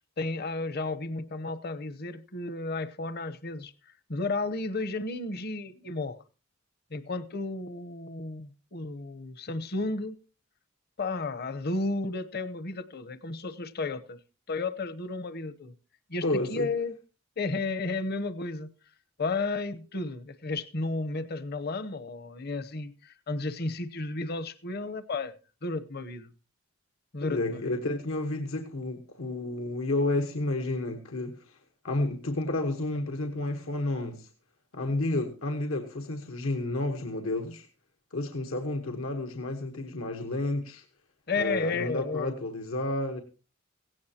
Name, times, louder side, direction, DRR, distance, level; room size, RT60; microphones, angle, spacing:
voice 1, 0.2-6.2 6.9-10.2 11.0-14.2 14.5-15.7 16.1-16.9 17.4-18.7 19.2-25.3 25.6-26.3 27.1-27.7 41.3-42.4, left 3 dB, 50° left, 0.9 m, -33 dB
voice 2, 16.2-16.7 27.3-31.6 31.8-34.3 34.7-37.7 38.1-40.8 41.4-43.2, left 2 dB, 85° left, 1.3 m, -31 dB
16.5 x 16.5 x 2.9 m
head